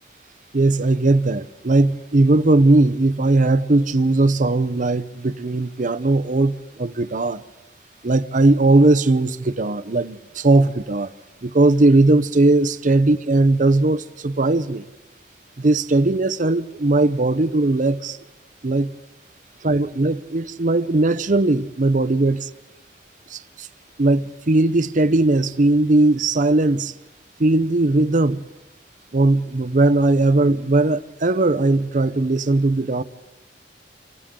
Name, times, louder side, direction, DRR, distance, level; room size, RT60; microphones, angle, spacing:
voice 1, 0.5-7.4 8.0-11.1 11.4-14.8 15.6-18.2 18.6-18.9 19.6-22.5 23.3-23.7 24.0-26.9 27.4-28.4 29.1-33.0, right 2 dB, 45° right, 0.7 m, -18 dB
29.0 x 25.0 x 3.8 m
head